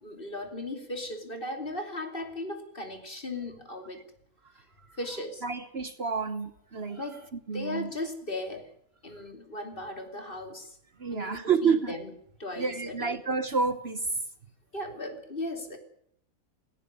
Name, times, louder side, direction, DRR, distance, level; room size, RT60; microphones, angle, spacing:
voice 1, 0.0-4.0 5.0-5.4 7.0-7.2 7.5-8.7 9.0-10.8 11.1-12.1 12.4-13.2 14.7-15.8, left 1 dB, 40° left, 3.2 m, -37 dB
voice 2, 5.4-7.0 7.5-7.9 11.0-11.9 12.6-14.2, right 5 dB, 50° right, 1.3 m, -29 dB
17.5 x 17.0 x 9.6 m
omnidirectional pair, 1.5 m